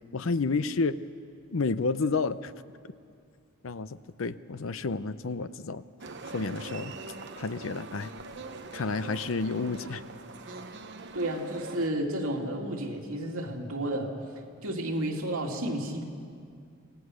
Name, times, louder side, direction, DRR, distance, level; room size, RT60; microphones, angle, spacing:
voice 1, 0.1-1.0 1.5-2.5 3.6-5.8 6.3-7.0 7.4-8.1 8.7-10.0, left 4 dB, 70° left, 14 dB, 0.6 m, -30 dB
sound 1, 6.0-11.9, right 3 dB, 55° right, 1.0 m, -42 dB
voice 2, 11.1-14.1 14.6-16.0, right 1 dB, 85° right, 1 dB, 2.5 m, -31 dB
26.0 x 17.5 x 6.4 m, 2.2 s
head